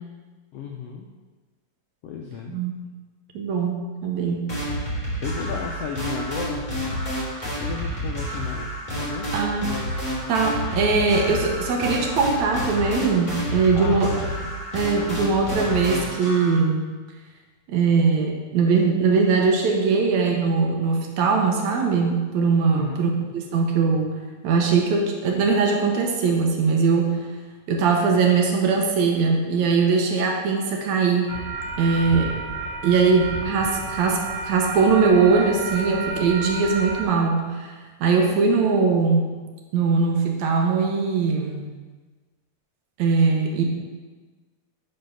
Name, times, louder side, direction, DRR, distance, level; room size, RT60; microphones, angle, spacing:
voice 1, 0.5-1.1 2.0-2.5 5.2-6.6 7.6-9.3 13.7-14.5 22.7-23.1, left 7 dB, 90° left, 1 dB, 1.4 m, -34 dB
voice 2, 3.3-4.4 9.3-9.7 10.3-14.1 14.7-16.9 17.7-27.2 27.7-31.3 31.8-32.4 32.8-39.3 39.7-41.7 43.0-43.6, right 4 dB, 75° right, 1 dB, 2.2 m, -21 dB
sound 1, 4.5-16.6, equal, 15° left, 2.2 m, -29 dB
sound 2, 31.3-37.0, right 3 dB, 50° right, 1.3 m, -31 dB
7.6 x 4.5 x 5.5 m, 1.3 s
omnidirectional pair, 3.5 m